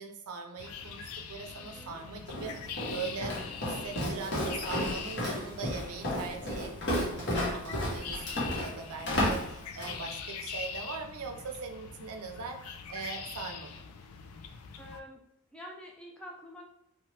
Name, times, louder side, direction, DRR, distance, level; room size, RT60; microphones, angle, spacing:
voice 1, 0.0-12.6 12.9-13.8, right 5 dB, 90° right, 4 dB, 0.5 m, -41 dB
sound 1, 0.6-15.0, left 6 dB, 85° left, 0.3 m, -43 dB
voice 2, 1.5-2.0 14.8-15.2 15.5-16.6, equal, 5° left, -2 dB, 0.4 m, -48 dB
Walk footsteps, 2.3-10.0, left 1 dB, 50° left, 0.8 m, -33 dB
2.9 x 2.2 x 3.1 m, 0.76 s
head